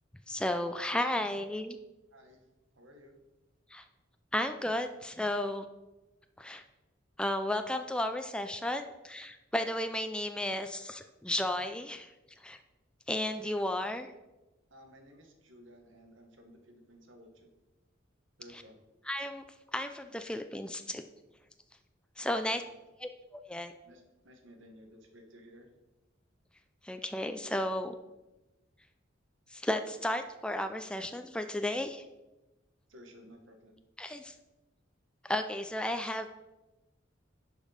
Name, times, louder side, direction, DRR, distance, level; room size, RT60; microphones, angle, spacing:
voice 1, 0.3-1.8 3.7-3.8 4.3-5.6 6.4-6.6 7.2-12.1 12.4-12.6 13.1-14.1 18.5-18.6 19.0-19.4 19.7-21.0 22.2-22.6 23.0-23.7 26.8-27.9 29.5-32.1 34.0-34.3 35.2-36.3, left 1 dB, 5° left, 7 dB, 0.3 m, -33 dB
voice 2, 2.8-3.1 14.7-17.5 18.4-18.7 22.2-22.6 23.8-25.7 32.9-33.8, equal, 80° right, 4 dB, 1.5 m, -55 dB
10.5 x 5.2 x 5.0 m, 1.1 s
head